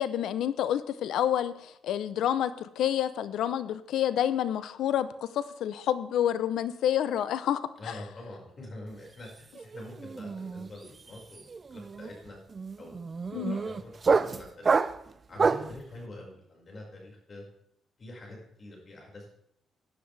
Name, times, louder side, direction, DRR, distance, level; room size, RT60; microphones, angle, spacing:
voice 1, 0.0-5.1 5.3-7.9 13.3-13.6, left 10 dB, 80° left, 14 dB, 0.7 m, -28 dB
voice 2, 7.8-12.4 12.8-14.7 15.3-17.4 18.0-19.3, left 1 dB, 40° left, -1 dB, 5.4 m, -45 dB
sound 1, 9.0-9.3 9.5-15.8, right 4 dB, 35° right, 0.5 m, -29 dB
16.0 x 10.0 x 3.4 m, 0.75 s
cardioid pair, 90°, 0 cm